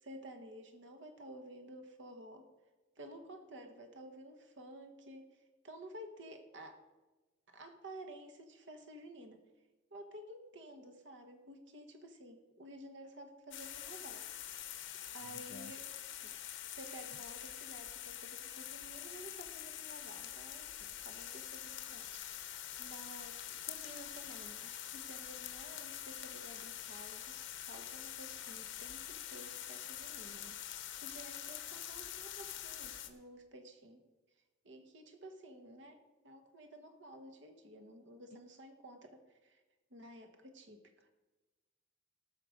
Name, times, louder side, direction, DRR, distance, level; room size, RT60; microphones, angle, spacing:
voice 1, 0.0-2.5 3.0-5.4 5.6-6.8 7.5-9.4 9.9-14.2 15.1-15.8 16.2-16.5 16.7-34.0 34.6-36.0 36.2-39.6 39.9-41.1, right 1 dB, 70° right, 1.2 m, -53 dB
sound 1, 13.5-33.1, left 11 dB, 80° left, 1.0 m, -45 dB
voice 2, 15.2-15.7 17.1-17.2 38.3-38.4, left 4 dB, 50° left, 0.3 m, -54 dB
18.5 x 6.2 x 5.1 m
head